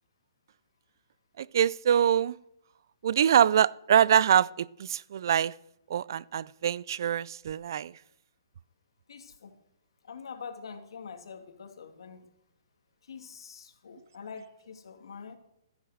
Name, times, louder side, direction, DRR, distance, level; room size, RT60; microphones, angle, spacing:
voice 1, 1.5-2.3 3.0-5.5 5.9-7.9, right 9 dB, 50° right, 0.4 m, -24 dB
voice 2, 9.1-9.5 10.0-12.3 13.1-15.4, left 6 dB, 75° left, 2.4 m, -45 dB
13.5 x 10.0 x 6.5 m
hypercardioid pair, 170°, 3 cm